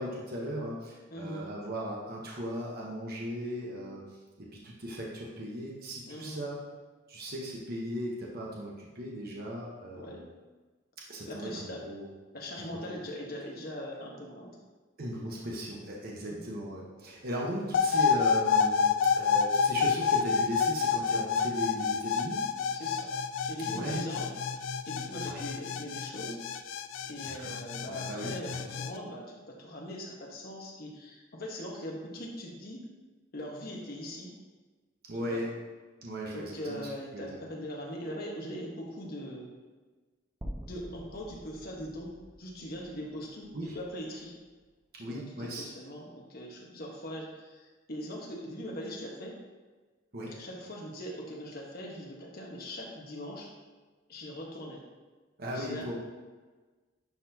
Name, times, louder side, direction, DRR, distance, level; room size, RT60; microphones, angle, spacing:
voice 1, 0.0-4.0 4.4-6.6 7.1-10.3 11.1-12.1 12.6-13.0 15.0-22.4 23.6-24.0 25.2-25.4 27.2-27.6 27.9-28.3 35.1-35.5 36.0-37.4 43.5-43.7 44.9-45.6 50.1-50.3 55.4-55.9, equal, 50° right, -3 dB, 1.0 m, -37 dB
voice 2, 1.1-1.5 6.1-6.4 9.9-10.2 11.2-11.8 12.3-14.6 16.2-16.4 22.7-23.1 23.4-24.3 24.8-26.4 27.0-32.9 33.3-34.3 35.2-35.4 36.3-39.5 40.6-44.3 45.0-49.4 50.3-53.5 54.1-54.8 55.5-55.9, equal, 50° left, -2 dB, 1.3 m, -41 dB
sound 1, 17.7-28.9, left 6 dB, 70° left, 0.3 m, -28 dB
sound 2, 40.4-44.6, equal, 15° right, 0.6 m, -47 dB
10.5 x 4.2 x 2.8 m, 1.3 s
head